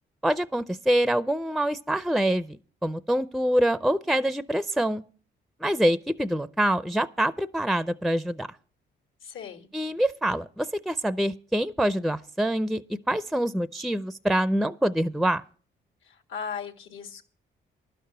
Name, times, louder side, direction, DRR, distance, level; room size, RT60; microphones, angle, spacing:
voice 1, 0.2-2.6 2.8-5.0 5.6-8.5 9.7-12.8 13.1-15.4, right 1 dB, ahead, 0.4 m, -25 dB
voice 2, 9.2-9.7 16.0-17.2, left 6 dB, 80° left, 1.7 m, -37 dB
11.5 x 6.7 x 7.8 m
cardioid pair, 90°, 20 cm